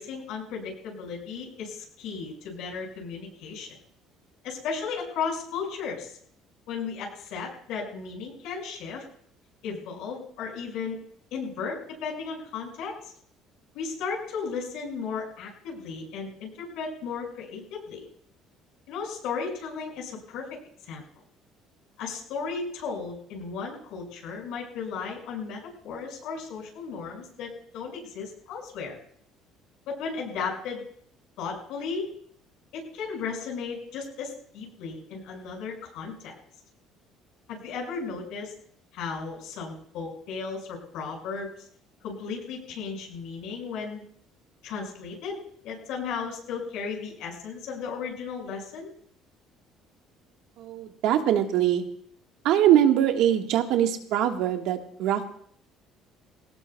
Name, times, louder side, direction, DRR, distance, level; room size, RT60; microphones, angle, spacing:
voice 1, 0.0-3.8 4.4-6.2 6.7-9.0 9.6-11.0 11.3-13.1 13.7-18.0 18.9-20.5 20.8-21.0 22.0-29.0 29.9-30.8 31.4-32.1 32.7-36.3 37.5-38.6 38.9-41.7 42.0-44.0 44.6-48.9, left 5 dB, 75° left, 0 dB, 5.6 m, -35 dB
voice 2, 50.6-51.8 52.4-55.2, right 11 dB, 75° right, 5 dB, 1.4 m, -22 dB
22.0 x 18.0 x 2.3 m, 0.62 s
cardioid pair, 150°, 0 cm